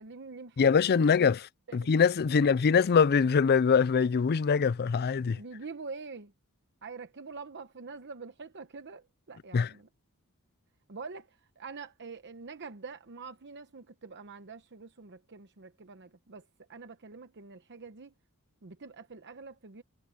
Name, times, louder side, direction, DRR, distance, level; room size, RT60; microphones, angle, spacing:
voice 1, 0.0-0.7 0.9-1.1 1.7-1.9 2.3-2.5 5.3-6.3 6.8-9.9 10.9-18.1 18.6-19.8, right 4 dB, 55° right, 0.9 m, -45 dB
voice 2, 0.6-5.4 9.5-9.7, left 6 dB, 45° left, 0.4 m, -23 dB
head